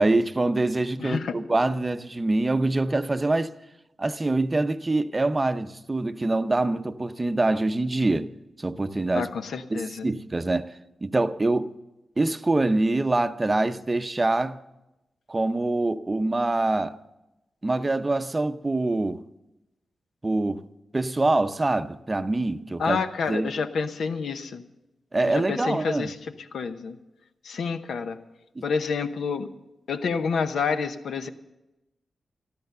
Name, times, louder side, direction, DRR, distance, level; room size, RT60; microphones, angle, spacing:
voice 1, 0.0-3.5 4.0-8.3 8.6-9.3 9.7-10.7 11.0-11.7 12.2-14.6 15.3-16.9 17.6-19.2 20.2-20.6 20.9-23.0 23.3-23.5 25.1-26.1 28.6-28.7, right 2 dB, 20° right, 0.6 m, -25 dB
voice 2, 1.0-1.3 9.1-10.1 22.8-24.6 25.2-27.0 27.4-28.2 28.6-29.5 29.9-31.3, left 5 dB, 80° left, 0.9 m, -28 dB
14.0 x 13.0 x 6.7 m
wide cardioid pair, 120°, 0 cm